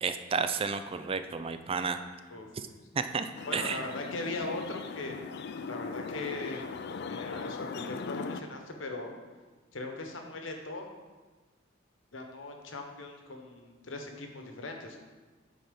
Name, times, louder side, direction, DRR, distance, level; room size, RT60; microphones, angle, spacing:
voice 1, 0.0-2.0 3.0-3.8, right 5 dB, 30° right, 9 dB, 0.4 m, -31 dB
voice 2, 3.4-5.2 5.7-6.6 7.1-9.1 9.7-10.9 12.1-15.0, left 2 dB, 75° left, 3 dB, 1.1 m, -39 dB
sound 1, 3.4-8.4, left 4 dB, 60° left, 0.4 m, -39 dB
9.1 x 4.2 x 5.3 m, 1.3 s
head